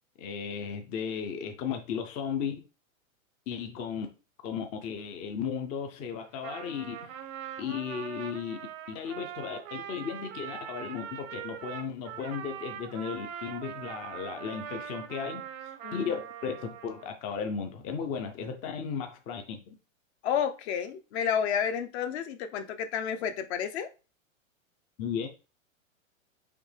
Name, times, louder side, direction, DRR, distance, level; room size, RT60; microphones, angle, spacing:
voice 1, 0.2-2.6 3.5-4.1 4.4-7.1 7.6-8.6 8.9-16.2 16.4-19.6 25.0-25.3, left 7 dB, 20° left, 0.4 m, -35 dB
Trumpet, 6.2-17.1, right 9 dB, 80° right, 0.8 m, -42 dB
voice 2, 15.8-16.2 20.2-23.9, left 8 dB, 55° left, 0.8 m, -31 dB
5.1 x 2.9 x 3.2 m
hypercardioid pair, 130°, 40 cm